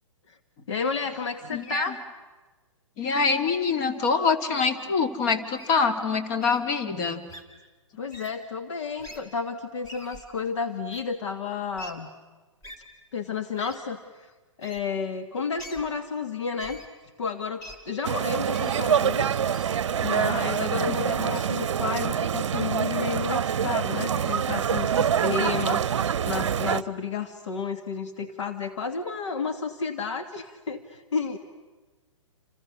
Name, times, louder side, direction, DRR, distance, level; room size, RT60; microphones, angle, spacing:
voice 1, 0.7-2.0 8.0-12.1 13.1-14.3 14.6-16.8 17.2-19.3 20.0-25.8 26.3-31.4, left 5 dB, 60° left, 7 dB, 1.6 m, -31 dB
voice 2, 1.5-1.9 3.0-7.2 20.9-21.0, left 5 dB, 35° left, 7 dB, 2.4 m, -25 dB
Wild animals, 5.6-5.8 6.4-6.6 7.3-7.4 8.1-8.3 9.0-9.2 9.8-10.2 10.9-11.0 11.8-11.9 12.6-12.8 13.6-13.8 14.6-14.8 15.6-15.8 16.6-16.9 17.6-17.8 18.5-18.8 19.5-19.7 20.4-20.6 21.3-21.5, equal, 20° left, 3.3 m, -44 dB
sound 1, 18.0-26.8, right 8 dB, 60° right, 0.8 m, -25 dB
29.0 x 28.0 x 6.3 m, 1.3 s
figure-of-eight pair, 125°, 17 cm